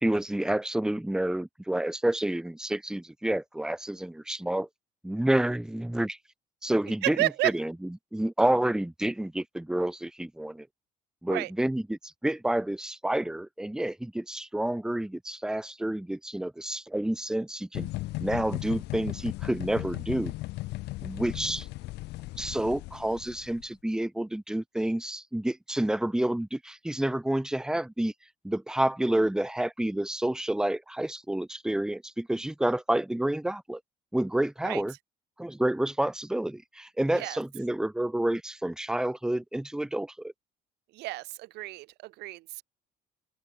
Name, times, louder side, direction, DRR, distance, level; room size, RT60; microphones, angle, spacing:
voice 1, 0.0-4.7 5.0-6.2 6.6-7.7 8.1-10.7 11.2-17.9 18.2-20.3 21.0-21.7 22.4-28.1 28.4-33.8 34.1-34.9 35.4-40.3, right 1 dB, 5° right, 0.9 m, -29 dB
voice 2, 7.0-7.6 11.3-11.5 34.6-34.8 37.2-37.4 40.9-42.6, right 19 dB, 80° right, 0.6 m, -31 dB
sound 1, 17.8-23.6, left 19 dB, 85° left, 2.5 m, -36 dB
open air
cardioid pair, 110°, 17 cm